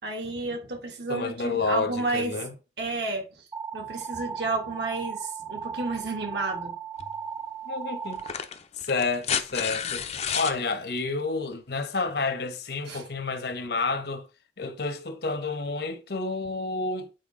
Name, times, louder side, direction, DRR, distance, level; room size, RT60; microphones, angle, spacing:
voice 1, 0.0-2.3 2.8-3.3 3.7-6.7 12.9-13.0, right 3 dB, 70° right, 2.3 m, -31 dB
voice 2, 1.1-2.5 7.7-8.2 8.8-10.0 10.3-14.3 14.6-17.1, left 3 dB, 60° left, 1.0 m, -30 dB
sound 1, 3.5-8.3, right 7 dB, 20° right, 0.6 m, -36 dB
sound 2, 7.0-7.1 8.1-10.6 12.1-12.2, left 8 dB, 35° left, 0.6 m, -31 dB
9.1 x 4.5 x 3.7 m
head